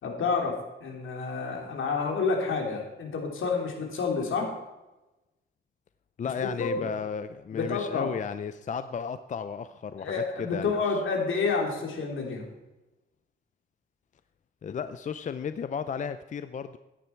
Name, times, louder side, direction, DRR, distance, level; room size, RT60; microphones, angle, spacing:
voice 1, 0.0-4.5 6.4-6.9 7.5-8.1 10.0-12.4, left 4 dB, 75° left, 2 dB, 3.1 m, -29 dB
voice 2, 6.2-11.0 14.6-16.8, left 6 dB, 40° left, 12 dB, 0.5 m, -34 dB
15.0 x 10.0 x 4.5 m, 1.0 s
wide cardioid pair, 135°, 20 cm